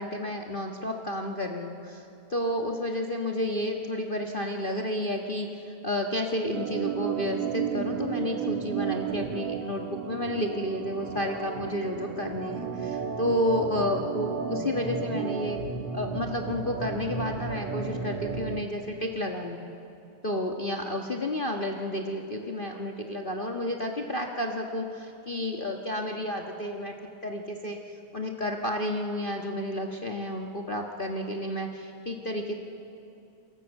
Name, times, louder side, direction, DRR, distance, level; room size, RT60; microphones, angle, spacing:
voice 1, 0.0-15.6 15.9-19.6 20.2-26.9 27.2-27.8 28.1-32.5, left 1 dB, 70° left, 2 dB, 0.5 m, -31 dB
Organ, 6.5-18.7, right 7 dB, 60° right, 2.1 m, -33 dB
29.5 x 21.5 x 8.2 m, 2.7 s
omnidirectional pair, 3.4 m